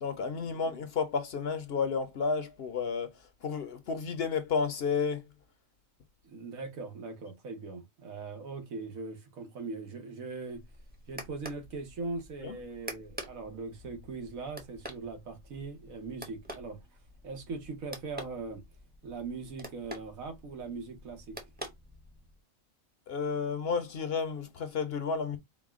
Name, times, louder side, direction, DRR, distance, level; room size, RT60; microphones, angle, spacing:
voice 1, 0.0-3.1 3.4-5.2 12.4-12.5 23.1-25.4, left 5 dB, 55° left, 0.8 m, -31 dB
voice 2, 6.2-10.6 11.1-16.8 17.2-18.6 19.0-21.4, right 3 dB, 90° right, 1.5 m, -40 dB
sound 1, 10.5-22.4, equal, 10° right, 0.8 m, -47 dB
4.8 x 2.2 x 3.5 m
omnidirectional pair, 1.4 m